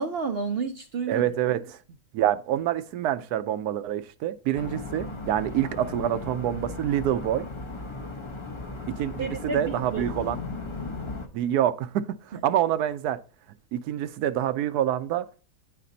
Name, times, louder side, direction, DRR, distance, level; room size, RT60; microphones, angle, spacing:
voice 1, 0.0-1.2 9.2-10.2, right 4 dB, 60° right, 0.6 m, -31 dB
voice 2, 1.1-1.8 2.1-7.5 8.9-10.4 11.3-13.2 13.7-15.4, right 11 dB, 75° right, 1.1 m, -26 dB
sound 1, 4.5-11.3, left 3 dB, 25° left, 0.6 m, -36 dB
9.5 x 3.3 x 3.9 m
omnidirectional pair, 1.7 m